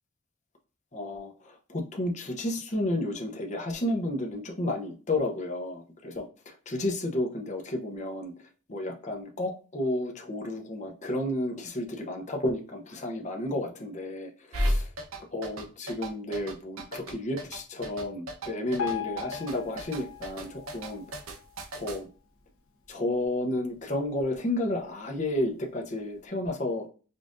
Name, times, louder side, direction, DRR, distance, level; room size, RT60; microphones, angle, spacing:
voice 1, 0.9-8.3 8.7-14.9 15.3-21.0 21.7-22.1 22.9-26.9, left 1 dB, 35° left, 2 dB, 0.7 m, -32 dB
sound 1, 14.5-22.0, equal, 80° right, 0.8 m, -32 dB
Piano, 18.8-21.9 22.4-22.6 22.9-23.0 23.7-23.8 24.3-24.4, left 9 dB, 80° left, 1.0 m, -39 dB
5.2 x 2.5 x 2.5 m, 0.37 s
head